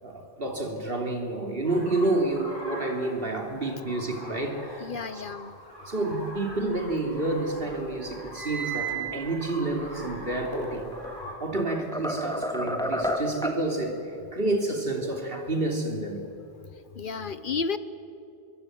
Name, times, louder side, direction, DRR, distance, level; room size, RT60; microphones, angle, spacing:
voice 1, 0.0-5.2 5.8-10.9 11.4-16.3, right 2 dB, 55° right, 3 dB, 3.3 m, -29 dB
sound 1, 1.6-11.3, left 1 dB, 20° left, 6.7 m, -43 dB
voice 2, 4.8-5.5 17.0-17.8, left 5 dB, 50° left, 13 dB, 1.0 m, -31 dB
sound 2, 6.3-7.4 7.7-11.1, right 10 dB, 40° right, 2.0 m, -37 dB
sound 3, 10.7-11.2 11.5-13.7, equal, 5° left, 1.9 m, -30 dB
25.5 x 22.5 x 9.4 m, 2.7 s
omnidirectional pair, 1.1 m